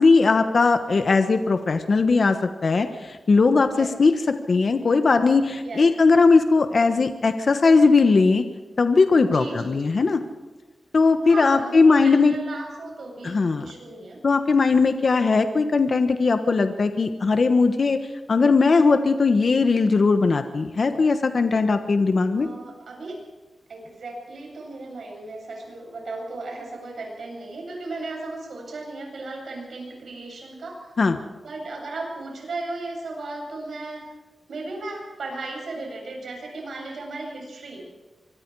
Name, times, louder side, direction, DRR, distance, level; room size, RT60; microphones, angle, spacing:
voice 1, 0.0-2.4 2.6-4.1 4.5-8.4 8.8-10.2 10.9-12.3 13.2-13.7 14.2-18.0 18.3-22.5 31.0-31.2, left 4 dB, 55° left, 7 dB, 1.3 m, -19 dB
voice 2, 0.9-1.2 3.7-3.9 5.6-5.8 9.3-9.9 11.2-14.2 22.3-23.2 23.7-30.9 31.4-34.1 34.5-37.8, right 2 dB, 80° right, 0 dB, 8.0 m, -36 dB
25.0 x 23.5 x 4.8 m, 1.2 s
wide cardioid pair, 105°, 0 cm